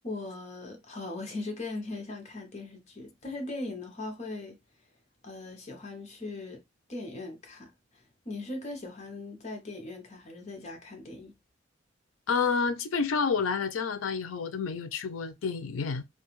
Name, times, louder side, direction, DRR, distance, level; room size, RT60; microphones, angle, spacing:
voice 1, 0.0-4.6 5.2-6.6 6.9-7.7 8.3-11.3, left 2 dB, 35° left, 0.7 m, -39 dB
voice 2, 12.3-16.0, left 5 dB, 80° left, 0.4 m, -29 dB
2.4 x 2.3 x 2.9 m
head